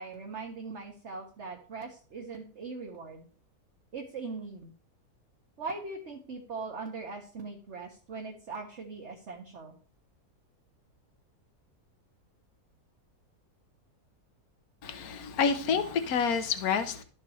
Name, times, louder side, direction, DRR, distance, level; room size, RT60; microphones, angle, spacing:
voice 1, 0.0-3.2 3.9-4.7 5.6-9.7, right 4 dB, 50° right, 1.6 m, -40 dB
voice 2, 14.8-17.0, left 6 dB, 70° left, 1.5 m, -28 dB
12.5 x 7.4 x 3.2 m
omnidirectional pair, 1.7 m